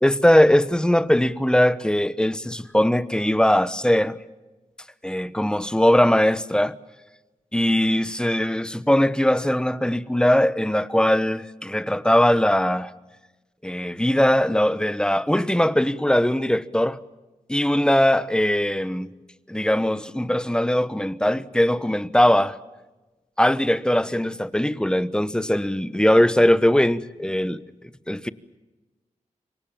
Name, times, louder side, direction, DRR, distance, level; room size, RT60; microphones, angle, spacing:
voice 1, 0.0-4.2 5.0-6.8 7.5-12.9 13.6-17.0 17.5-19.1 19.5-22.6 23.4-27.6 28.1-28.3, left 1 dB, 5° left, 1.0 m, -20 dB
27.0 x 23.5 x 7.2 m
wide cardioid pair, 80°, 13 cm